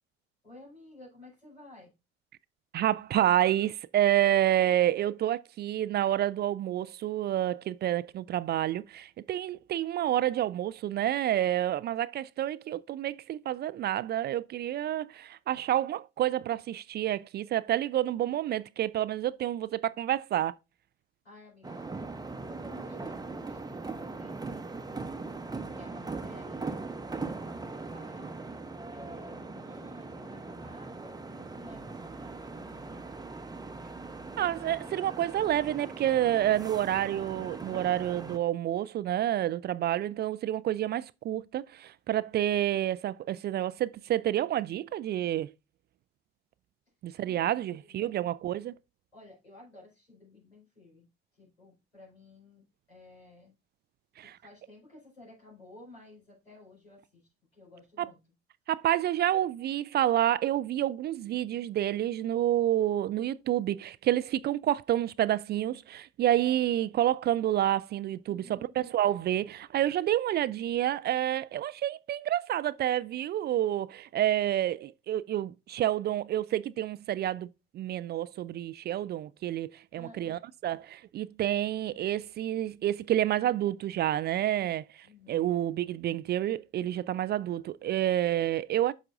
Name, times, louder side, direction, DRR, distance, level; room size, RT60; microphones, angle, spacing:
voice 1, 0.4-1.9 21.2-25.1 25.6-27.2 27.8-28.5 28.9-33.1 47.3-48.2 49.1-51.1 51.3-53.5 54.2-58.2 68.2-68.7 79.9-80.4 85.0-85.5, left 2 dB, 85° left, 4.7 m, -54 dB
voice 2, 2.7-20.5 34.4-45.5 47.0-48.7 54.2-54.4 58.0-58.1 58.7-88.9, right 12 dB, 35° right, 0.4 m, -29 dB
sound 1, 21.6-38.4, right 3 dB, 10° right, 0.9 m, -40 dB
8.9 x 6.4 x 2.4 m
figure-of-eight pair, 50°, 31 cm